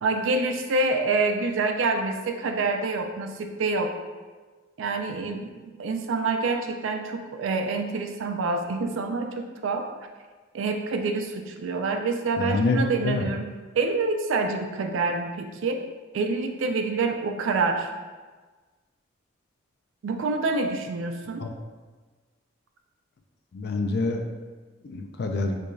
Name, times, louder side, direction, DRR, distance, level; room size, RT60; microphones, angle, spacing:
voice 1, 0.0-3.9 4.8-5.5 5.8-9.9 10.5-13.5 13.8-15.8 16.1-17.9 20.0-21.5, right 3 dB, 80° right, 5 dB, 0.4 m, -27 dB
voice 2, 12.4-13.3 21.4-21.5 23.5-24.2 24.8-25.6, left 3 dB, 50° left, 4 dB, 0.3 m, -26 dB
4.5 x 2.3 x 2.5 m, 1.4 s
head